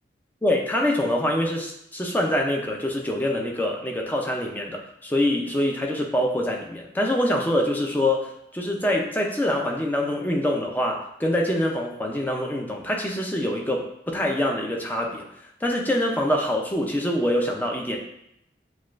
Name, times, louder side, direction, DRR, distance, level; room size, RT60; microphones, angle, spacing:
voice 1, 0.4-15.2 15.6-18.0, left 1 dB, 10° left, 0 dB, 0.4 m, -25 dB
6.3 x 2.3 x 2.4 m, 0.77 s
head